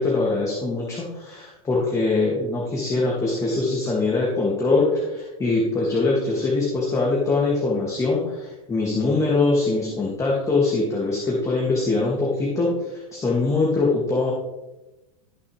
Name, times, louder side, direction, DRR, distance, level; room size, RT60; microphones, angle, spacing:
voice 1, 0.0-14.3, left 3 dB, 15° left, -4 dB, 2.6 m, -23 dB
15.0 x 6.5 x 3.5 m, 1.0 s
hypercardioid pair, 120°, 18 cm